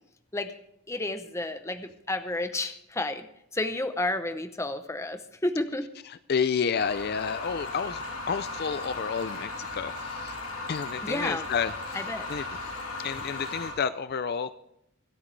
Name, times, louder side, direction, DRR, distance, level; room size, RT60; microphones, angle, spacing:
voice 1, 0.9-3.3 3.5-5.9 11.0-11.5 11.9-12.3, left 2 dB, 15° left, 9 dB, 0.7 m, -31 dB
voice 2, 6.3-10.4 10.7-11.7 12.3-12.6 13.0-14.5, left 6 dB, 45° left, 14 dB, 0.4 m, -30 dB
sound 1, 6.7-13.7, left 3 dB, 85° left, 5.7 m, -36 dB
25.0 x 9.0 x 3.3 m, 0.80 s
head